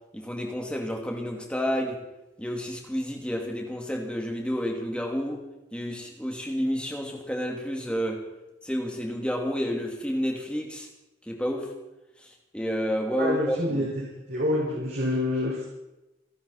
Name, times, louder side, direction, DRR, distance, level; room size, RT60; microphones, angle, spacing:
voice 1, 0.1-2.0 2.4-5.4 5.7-8.2 8.6-10.9 11.3-11.7 12.5-13.9, equal, 5° left, 0 dB, 2.7 m, -30 dB
voice 2, 13.2-13.9 14.3-15.7, left 1 dB, 60° right, -6 dB, 5.3 m, -27 dB
29.0 x 11.0 x 4.4 m, 0.98 s
head